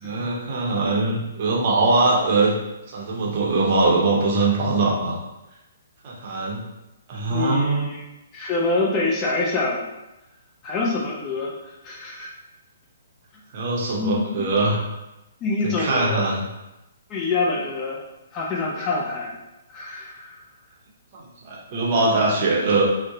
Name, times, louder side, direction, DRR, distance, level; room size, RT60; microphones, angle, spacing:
voice 1, 0.0-2.5 2.9-5.2 6.0-6.6 7.1-7.9 13.5-14.8 15.6-16.4 21.1-22.8, right 3 dB, 40° right, -4 dB, 0.6 m, -22 dB
voice 2, 7.3-8.0 8.3-9.9 10.6-11.5 11.8-12.3 14.0-14.3 15.4-16.3 17.1-18.0 18.3-19.4 19.7-20.4, left 3 dB, 25° left, -3 dB, 0.4 m, -25 dB
2.5 x 2.0 x 2.6 m, 0.95 s
figure-of-eight pair, 125°, 0 cm